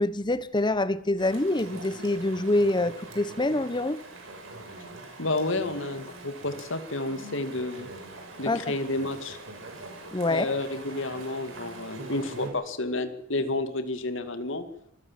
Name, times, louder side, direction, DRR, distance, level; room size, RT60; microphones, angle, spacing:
voice 1, 0.0-4.0 8.5-8.7 10.1-10.5, left 2 dB, 20° left, 15 dB, 1.0 m, -26 dB
Chatter / Stream, 1.2-12.5, right 2 dB, 75° right, 6.4 m, -43 dB
voice 2, 5.2-7.9 8.4-9.4 10.3-14.6, left 2 dB, 65° left, 9 dB, 2.3 m, -30 dB
25.5 x 15.0 x 7.5 m, 0.77 s
head